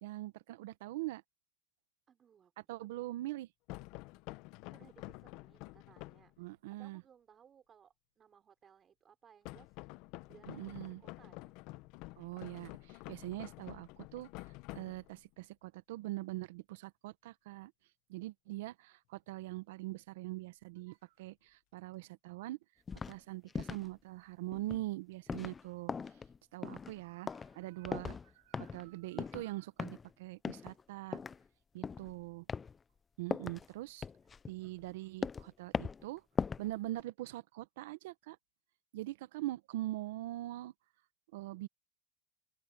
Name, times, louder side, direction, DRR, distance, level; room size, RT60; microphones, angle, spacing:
voice 1, 0.0-1.2 2.7-3.5 6.4-7.0 10.5-11.0 12.2-14.3 14.7-17.7 18.1-22.6 23.1-25.9 26.5-28.2 28.5-31.2 31.7-32.4 33.2-34.0 34.5-36.2 36.6-38.4 38.9-40.7 41.3-41.7, right 17 dB, 80° right, 1.2 m, -42 dB
voice 2, 2.1-3.1 4.7-9.8 10.3-11.6, right 8 dB, 30° right, 5.4 m, -64 dB
sound 1, 3.7-6.3 9.5-15.3, left 21 dB, 60° left, 0.9 m, -49 dB
sound 2, 22.9-23.2 23.5-23.9 24.5-24.9 25.3-25.6 25.9-26.4 26.6-27.0 27.3-27.6 27.8-28.3 28.5-28.9 29.2-29.5 29.8-30.1 30.4-30.8 31.1-31.4 31.8-32.1 32.5-32.7 33.3-33.7 34.0-34.9 35.2-35.5 35.7-36.1 36.3-36.7 37.0-37.1, left 5 dB, 20° left, 0.6 m, -39 dB
supercardioid pair, 115°, 0 cm